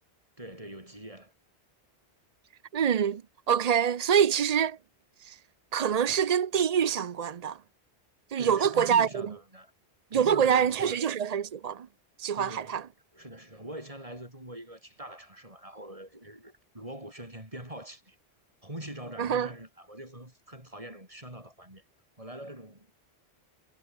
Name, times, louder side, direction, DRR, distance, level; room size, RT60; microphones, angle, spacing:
voice 1, 0.4-1.3 8.4-9.7 10.1-11.0 12.4-12.8 13.1-18.2 18.6-21.8 22.2-22.9, right 1 dB, 30° right, 6.6 m, -43 dB
voice 2, 2.7-3.2 3.5-4.8 5.2-5.4 5.7-7.6 8.3-9.1 10.1-11.9 12.2-12.8 19.2-19.5, right 8 dB, 45° right, 0.6 m, -25 dB
omnidirectional pair, 1.1 m